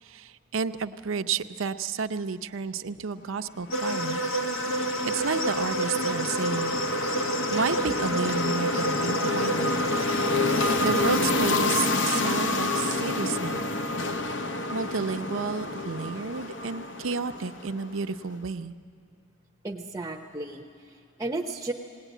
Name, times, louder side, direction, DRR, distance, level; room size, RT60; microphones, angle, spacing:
voice 1, 0.0-4.2 5.0-6.8 7.5-9.8 10.8-13.7 14.7-18.7, right 5 dB, 80° right, 10 dB, 0.6 m, -31 dB
sound 1, 3.7-11.3, right 1 dB, 75° left, 1.5 m, -29 dB
sound 2, 3.7-18.0, left 2 dB, 60° left, 0.7 m, -29 dB
voice 2, 19.6-21.7, right 2 dB, 15° right, 4 dB, 0.7 m, -34 dB
19.0 x 18.5 x 9.2 m, 2.4 s
head